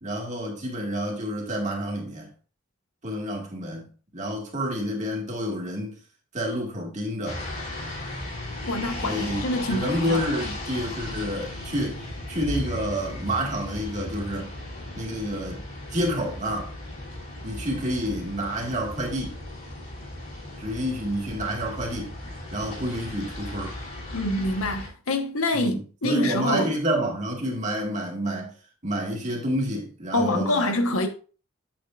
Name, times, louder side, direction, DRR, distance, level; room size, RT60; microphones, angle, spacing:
voice 1, 0.0-2.3 3.0-6.0 6.3-7.4 9.0-12.0 12.3-14.5 14.9-15.6 15.9-16.7 17.4-19.4 20.6-22.1 22.5-23.8 25.5-28.5 28.8-30.7, equal, 35° right, 2.1 m, -29 dB
sound 1, 7.2-24.9, left 1 dB, 40° left, 3.0 m, -36 dB
voice 2, 8.6-10.2 24.1-26.7 30.1-31.1, left 1 dB, 85° left, 1.2 m, -26 dB
8.5 x 8.0 x 2.5 m
head